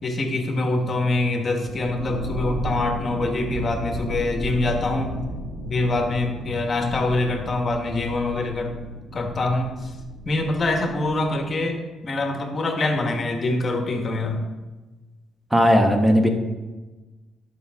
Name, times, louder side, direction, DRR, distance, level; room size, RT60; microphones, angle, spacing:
voice 1, 0.0-5.2 5.7-8.7 9.1-9.9 10.2-14.4, left 2 dB, 40° left, 4 dB, 1.5 m, -24 dB
sound 1, 1.6-11.4, right 1 dB, 80° right, 1.6 m, -34 dB
voice 2, 15.5-16.3, equal, 10° right, 5 dB, 1.3 m, -17 dB
12.0 x 6.1 x 3.7 m, 1.2 s
cardioid pair, 90°, 0 cm